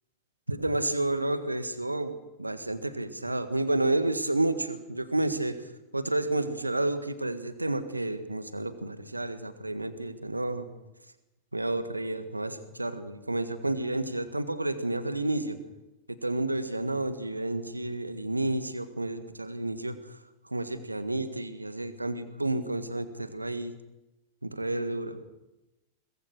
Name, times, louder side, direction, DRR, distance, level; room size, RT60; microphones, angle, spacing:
voice 1, 0.5-10.7 11.5-15.6 16.1-20.2 20.4-23.7 24.4-25.2, right 2 dB, 85° right, 12 dB, 1.7 m, -30 dB
22.5 x 20.5 x 6.5 m, 0.99 s
figure-of-eight pair, 90°, 0 cm